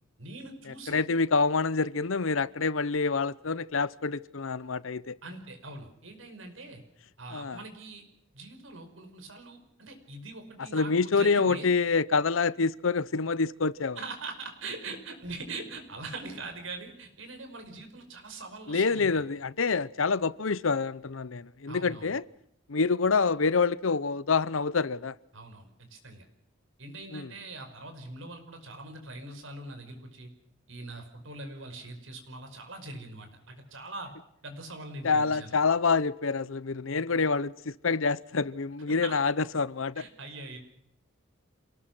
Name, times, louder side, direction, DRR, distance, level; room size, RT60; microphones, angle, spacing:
voice 1, 0.2-1.0 5.2-6.8 7.2-8.0 8.3-11.7 14.0-19.2 21.7-22.1 25.3-26.3 26.8-30.3 30.7-34.1 34.4-35.6 38.9-39.1 40.0-40.6, right 2 dB, 75° right, 5.5 m, -42 dB
voice 2, 0.9-5.2 7.3-7.6 10.7-14.0 18.7-22.2 22.7-25.2 27.1-27.3 35.0-40.0, left 4 dB, 80° left, 0.8 m, -27 dB
27.5 x 19.0 x 6.1 m
head